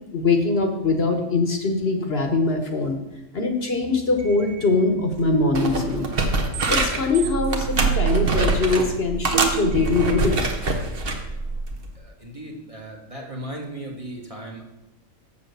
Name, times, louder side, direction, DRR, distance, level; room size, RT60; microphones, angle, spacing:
voice 1, 0.1-3.0 3.3-6.1 6.7-10.4, left 3 dB, 50° left, 4 dB, 1.3 m, -22 dB
sound 1, 3.8-11.6, right 8 dB, 80° right, 1.2 m, -29 dB
sound 2, 5.1-5.3 5.5-7.1 7.5-8.9 9.2-11.2 11.7-11.9, right 2 dB, 45° right, 1.2 m, -24 dB
voice 2, 11.9-14.6, right 1 dB, 25° right, 0 dB, 1.4 m, -36 dB
7.3 x 7.2 x 6.7 m, 0.94 s
omnidirectional pair, 1.4 m